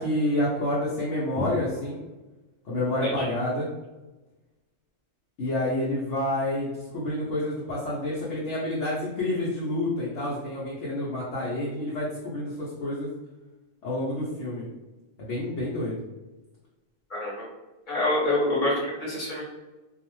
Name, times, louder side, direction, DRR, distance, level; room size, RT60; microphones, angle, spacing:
voice 1, 0.0-2.0 2.6-3.7 5.4-13.1 13.8-14.6 15.2-16.0, left 1 dB, 70° left, -7 dB, 1.0 m, -28 dB
voice 2, 17.1-17.4 17.9-19.4, left 1 dB, 40° left, -6 dB, 1.0 m, -26 dB
2.4 x 2.1 x 2.9 m, 1.1 s
omnidirectional pair, 1.3 m